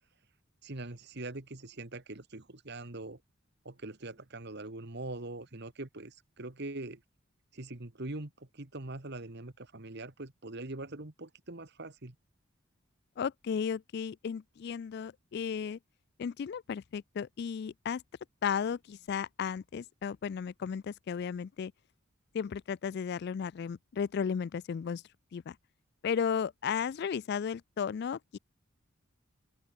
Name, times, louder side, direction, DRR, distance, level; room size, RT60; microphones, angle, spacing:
voice 1, 0.6-3.2 3.6-7.0 7.5-12.1, right 2 dB, 50° right, 1.6 m, -42 dB
voice 2, 13.2-15.8 16.2-18.0 18.4-21.7 22.3-25.0 25.3-25.6 26.0-28.4, left 7 dB, 50° left, 0.3 m, -34 dB
open air
head